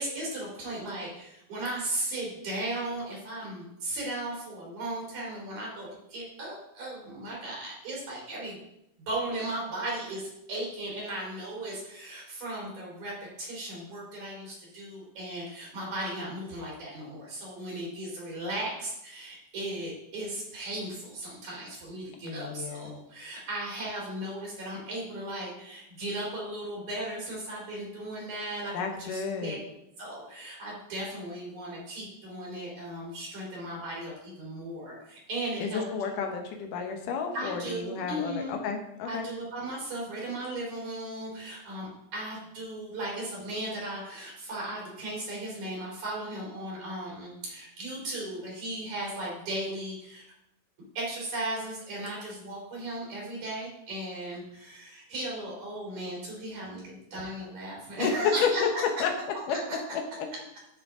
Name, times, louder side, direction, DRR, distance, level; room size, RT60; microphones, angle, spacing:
voice 1, 0.0-8.6 9.1-29.6 30.0-35.9 36.1-36.2 37.3-38.5 39.1-50.2 50.9-58.8 59.5-59.8, right 1 dB, 65° right, -4 dB, 4.6 m, -36 dB
voice 2, 22.2-23.0 28.7-29.6 35.6-39.3 58.0-58.1 58.4-59.1 59.5-60.0, left 6 dB, 85° left, 3 dB, 2.7 m, -31 dB
11.0 x 6.5 x 3.7 m, 0.82 s
omnidirectional pair, 3.7 m